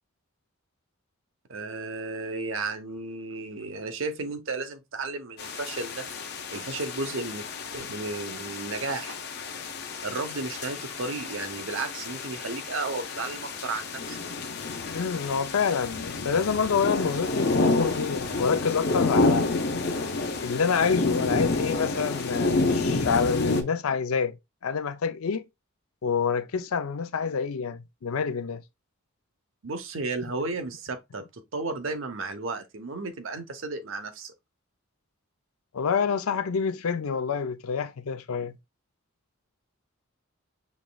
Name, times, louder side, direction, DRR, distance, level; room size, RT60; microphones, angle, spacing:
voice 1, 1.5-6.1 6.5-7.4 7.7-9.2 10.0-14.2 29.6-31.2 31.5-34.3, right 3 dB, 70° right, 0.8 m, -33 dB
sound 1, 5.4-23.6, left 3 dB, 50° left, 0.7 m, -29 dB
voice 2, 14.9-19.5 20.4-24.4 24.6-25.5 26.0-28.6 35.7-38.6, left 6 dB, 90° left, 0.5 m, -27 dB
6.4 x 3.1 x 2.3 m
head